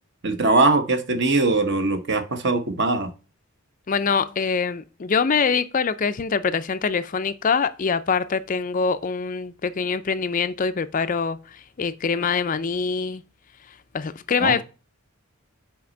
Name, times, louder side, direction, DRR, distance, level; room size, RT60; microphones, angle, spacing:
voice 1, 0.2-3.1 14.4-14.6, right 3 dB, 50° right, 1.1 m, -21 dB
voice 2, 3.9-13.2 13.9-14.6, left 5 dB, 35° left, 0.4 m, -24 dB
5.8 x 5.1 x 6.3 m
head